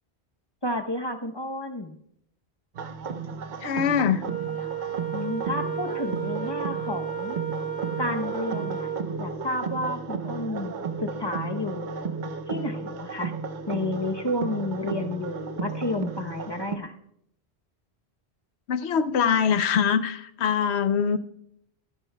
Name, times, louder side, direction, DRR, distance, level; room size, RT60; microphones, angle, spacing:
voice 1, 0.6-2.0 5.1-7.4 8.0-8.9 9.2-10.7 11.0-12.1 12.5-13.3 13.7-16.9, left 1 dB, 25° left, 5 dB, 0.8 m, -31 dB
sound 1, 2.7-16.8, right 5 dB, 50° right, 0.7 m, -34 dB
voice 2, 3.6-4.2 18.7-21.2, left 7 dB, 80° left, 12 dB, 1.0 m, -23 dB
Wind instrument woodwind instrument, 4.2-9.1, right 9 dB, 35° right, 1.2 m, -33 dB
sound 2, 5.4-16.0, right 1 dB, 80° right, 3.2 m, -41 dB
24.5 x 10.5 x 2.3 m, 0.73 s
omnidirectional pair, 1.1 m